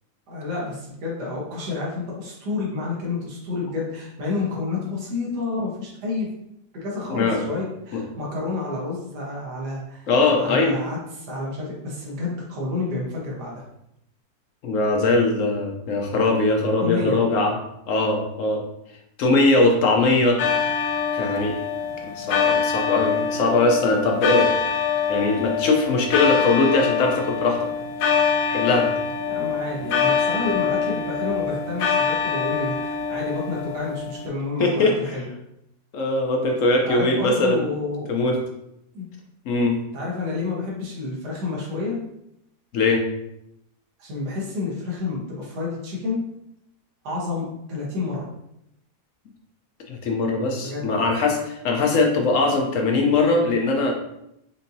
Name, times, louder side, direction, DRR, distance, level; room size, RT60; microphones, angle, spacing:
voice 1, 0.3-6.3 6.7-10.1 10.4-13.6 16.8-17.2 29.3-35.3 36.9-38.1 38.9-39.1 39.9-42.0 44.0-46.2 47.0-48.3 50.6-50.9, left 3 dB, 80° right, -4 dB, 1.7 m, -29 dB
voice 2, 7.1-7.4 7.9-8.0 10.1-10.8 14.6-17.5 17.9-18.6 19.2-20.4 21.1-21.6 22.0-24.6 25.1-27.6 28.5-28.9 34.6-34.9 35.9-37.6 38.1-38.4 39.5-39.8 42.7-43.0 49.9-53.9, left 3 dB, 60° left, 2 dB, 1.0 m, -21 dB
sound 1, 20.4-34.3, left 6 dB, 80° left, 1.2 m, -24 dB
5.2 x 2.7 x 2.6 m, 0.80 s
omnidirectional pair, 1.7 m